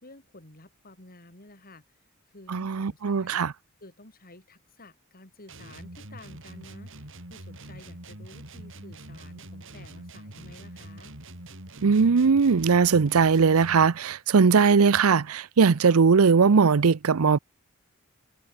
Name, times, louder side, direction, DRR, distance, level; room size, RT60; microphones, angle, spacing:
voice 1, 0.0-1.8 2.3-3.4 3.8-11.1, left 2 dB, 45° left, 5.5 m, -51 dB
voice 2, 2.5-3.5 11.8-17.4, right 5 dB, 85° right, 0.6 m, -20 dB
sound 1, 5.5-14.0, right 1 dB, 65° right, 5.9 m, -44 dB
head